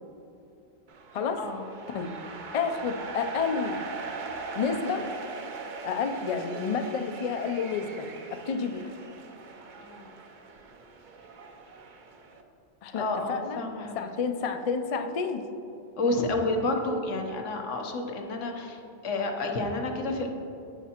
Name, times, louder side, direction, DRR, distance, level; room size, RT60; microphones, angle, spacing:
sound 1, 0.9-12.4, right 4 dB, 50° right, 0.7 m, -41 dB
voice 1, 2.5-3.8 4.5-5.1 5.8-8.9 12.8-13.6 14.0-15.5, left 5 dB, 60° left, 6 dB, 0.4 m, -30 dB
voice 2, 13.0-14.1 16.0-20.3, left 2 dB, 90° left, 2 dB, 1.2 m, -30 dB
9.7 x 7.2 x 2.9 m, 2.8 s
omnidirectional pair, 1.2 m